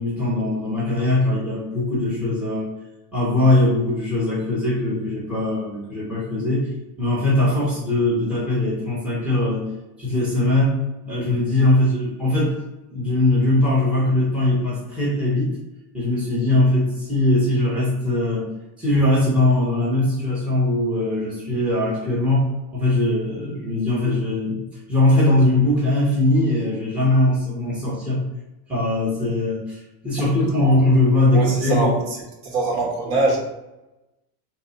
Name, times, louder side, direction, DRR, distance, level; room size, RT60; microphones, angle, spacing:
voice 1, 0.0-2.7 3.1-6.7 7.0-9.7 10.0-12.6 12.9-15.6 15.9-18.5 18.8-24.6 24.9-28.2 28.7-32.0 32.7-32.8, left 1 dB, 5° right, -8 dB, 0.6 m, -20 dB
voice 2, 31.3-31.9 32.5-33.4, right 2 dB, 85° right, -1 dB, 1.3 m, -22 dB
2.8 x 2.2 x 3.9 m, 0.98 s
cardioid pair, 170°, 47 cm